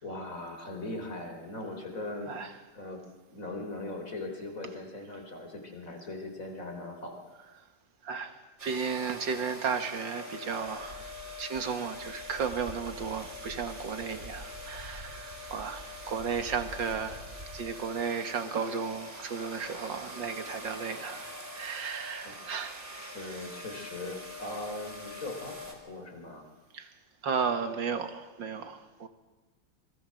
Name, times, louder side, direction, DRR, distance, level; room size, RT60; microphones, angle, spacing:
voice 1, 0.0-2.4 2.7-3.0 3.3-7.3 22.2-22.3 23.0-26.5, left 2 dB, 40° left, 4.4 m, -40 dB
voice 2, 8.0-11.0 11.4-17.2 17.5-22.8 26.7-26.9 27.2-29.1, right 6 dB, 65° right, 2.3 m, -34 dB
sound 1, 8.6-25.7, left 1 dB, 35° right, 4.4 m, -44 dB
27.0 x 21.0 x 7.8 m
omnidirectional pair, 2.2 m